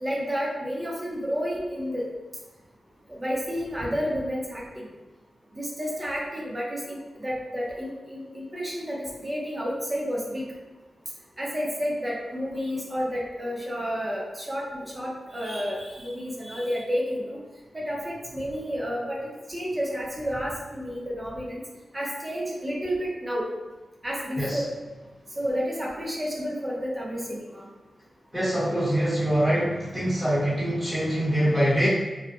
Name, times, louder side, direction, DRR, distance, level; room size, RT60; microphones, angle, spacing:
voice 1, 0.0-2.0 3.1-4.9 5.5-10.4 11.4-17.4 17.7-21.6 21.9-23.5 24.0-24.6 25.4-27.6, equal, 25° right, -3 dB, 0.6 m, -30 dB
voice 2, 28.3-31.9, equal, 5° left, -10 dB, 1.0 m, -24 dB
2.6 x 2.1 x 2.4 m, 1.2 s
wide cardioid pair, 80°, 0 cm